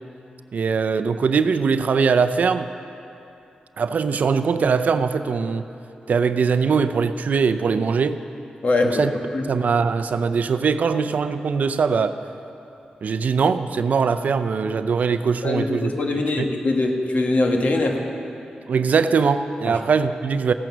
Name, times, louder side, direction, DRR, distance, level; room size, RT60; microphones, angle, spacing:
voice 1, 0.5-2.7 3.8-5.6 6.1-8.2 8.8-9.1 9.5-12.2 13.0-15.9 16.4-16.5 18.7-20.5, right 5 dB, 70° right, 11 dB, 0.5 m, -21 dB
voice 2, 8.6-9.0 9.3-9.4 15.4-18.0 19.7-19.8, left 2 dB, 60° left, 2 dB, 1.5 m, -22 dB
15.5 x 9.0 x 6.1 m, 2.8 s
cardioid pair, 70°, 3 cm